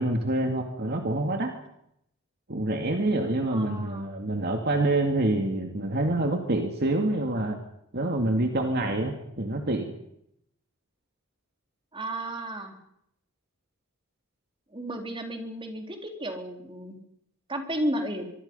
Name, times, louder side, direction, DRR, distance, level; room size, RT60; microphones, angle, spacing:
voice 1, 0.0-1.5 2.5-7.6 7.9-9.9, right 2 dB, 50° right, 3 dB, 2.4 m, -26 dB
voice 2, 3.5-4.1 11.9-12.8 14.7-17.0 17.5-18.3, right 1 dB, 25° right, 3 dB, 4.0 m, -33 dB
25.0 x 24.0 x 5.6 m, 0.75 s
head